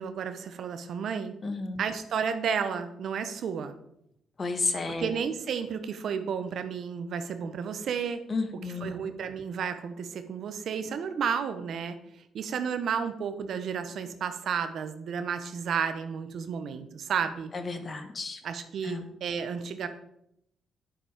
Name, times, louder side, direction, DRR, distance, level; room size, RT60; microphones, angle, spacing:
voice 1, 0.0-1.4 1.8-3.7 4.9-8.2 8.5-12.0 12.3-17.5 18.4-19.9, right 7 dB, 65° right, 9 dB, 1.0 m, -32 dB
voice 2, 1.4-1.8 4.4-5.1 8.3-8.9 17.5-18.4 18.8-19.0, left 3 dB, 35° left, 7 dB, 1.5 m, -32 dB
9.9 x 7.5 x 5.1 m, 0.77 s
cardioid pair, 90°, 0 cm